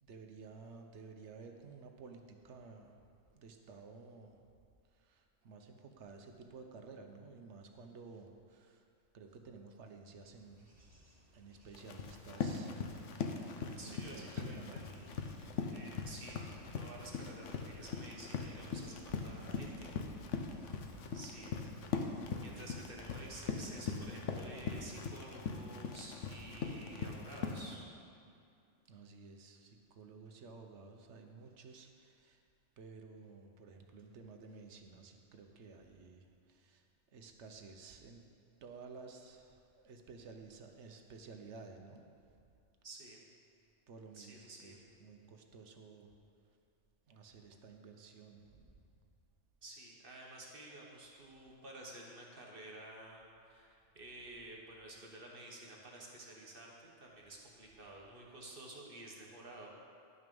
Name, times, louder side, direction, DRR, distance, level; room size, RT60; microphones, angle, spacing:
voice 1, 0.0-3.0 3.3-4.4 5.0-8.8 9.1-10.9 11.3-12.8 13.4-15.6 26.3-26.7 28.9-32.4 32.8-36.8 37.1-38.3 38.6-42.1 43.9-46.1 47.1-48.8, right 4 dB, 70° right, 4 dB, 1.1 m, -54 dB
Bird / Insect / Wind, 10.3-25.3, right 2 dB, 30° right, 2.8 m, -61 dB
Run, 11.7-27.7, left 5 dB, 80° left, 1.1 m, -41 dB
voice 2, 13.8-15.3 15.7-19.9 20.3-20.4 21.1-21.6 22.0-22.1 22.4-27.9 42.8-43.2 44.1-44.8 49.6-59.8, right 2 dB, 50° right, -2 dB, 1.4 m, -52 dB
11.0 x 6.3 x 5.3 m, 2.5 s
omnidirectional pair, 1.3 m